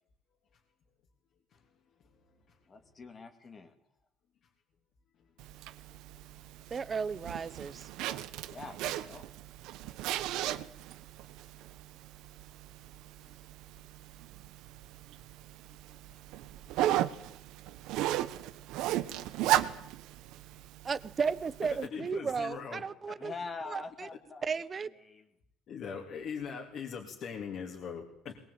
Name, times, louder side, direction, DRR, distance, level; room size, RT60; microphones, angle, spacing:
voice 1, 2.0-2.6 5.2-5.5 6.4-6.5 10.6-10.7 13.2-13.3 16.1-16.2 21.6-22.8 23.1-23.2 25.7-28.4, left 6 dB, 50° left, 0 dB, 3.5 m, -42 dB
voice 2, 2.7-3.7 8.5-9.2 10.5-10.6 23.2-24.4 25.0-25.3, left 4 dB, 25° left, 7 dB, 2.8 m, -44 dB
Zipper (clothing), 5.4-21.9, right 13 dB, 80° right, 1.3 m, -36 dB
voice 3, 6.7-7.9 20.8-23.3 23.7-24.1 24.4-24.9, right 5 dB, 30° right, 18 dB, 1.0 m, -34 dB
22.0 x 22.0 x 8.8 m, 0.75 s
cardioid pair, 140°, 0 cm